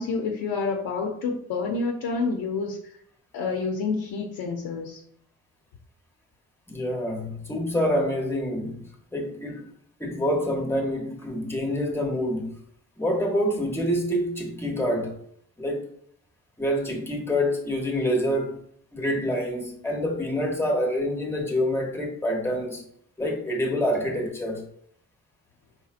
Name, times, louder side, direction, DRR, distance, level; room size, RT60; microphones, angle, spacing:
voice 1, 0.0-2.9 3.3-5.0, left 4 dB, 85° left, 0.6 m, -28 dB
voice 2, 6.7-9.7 10.0-12.6 13.0-15.2 15.6-15.8 16.6-18.6 18.9-22.8 23.2-24.6, equal, 5° left, 1.0 m, -27 dB
4.2 x 3.4 x 2.4 m
cardioid pair, 85°, 36 cm